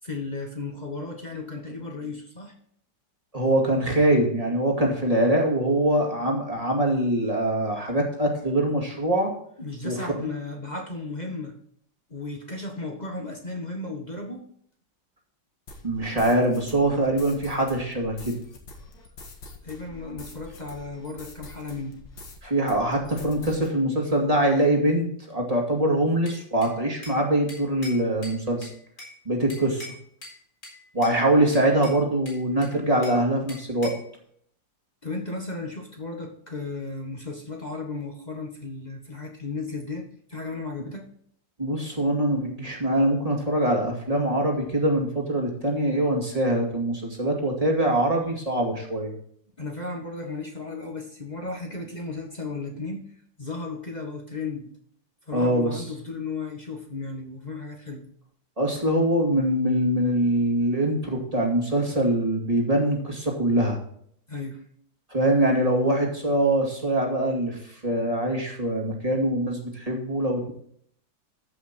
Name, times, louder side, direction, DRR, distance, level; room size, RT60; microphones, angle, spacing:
voice 1, 0.0-2.5 9.6-11.5 12.1-14.5 19.6-22.0 35.0-41.1 49.6-53.0 53.4-54.7 55.3-58.1 64.3-64.6, left 3 dB, 25° left, 2 dB, 1.3 m, -35 dB
voice 2, 3.3-9.3 9.8-10.3 15.8-18.4 22.4-28.7 29.3-29.9 30.9-33.9 41.6-49.1 55.3-55.8 58.6-63.8 65.1-70.5, right 1 dB, 20° right, 0 dB, 2.3 m, -23 dB
sound 1, 15.7-22.4 22.7-23.7, left 2 dB, 80° left, 2.5 m, -45 dB
Bell / Glass, 26.3-27.2 27.5-29.2 29.5-30.4 30.6-31.2 31.5-33.2 33.5-34.1, left 1 dB, 60° left, 4.8 m, -43 dB
14.0 x 5.7 x 4.4 m, 0.65 s
omnidirectional pair, 2.0 m